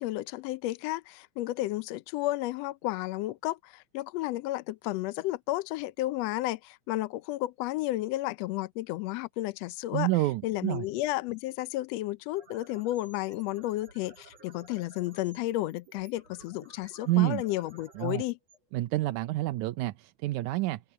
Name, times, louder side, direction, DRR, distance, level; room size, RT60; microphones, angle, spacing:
voice 1, 0.0-10.1 10.4-18.4, left 16 dB, 75° left, 1.6 m, -32 dB
voice 2, 9.9-10.9 17.1-17.4 18.0-18.2 18.7-20.8, right 18 dB, 85° right, 2.1 m, -28 dB
sound 1, 12.2-19.3, right 3 dB, 60° right, 5.2 m, -56 dB
omnidirectional pair, 3.3 m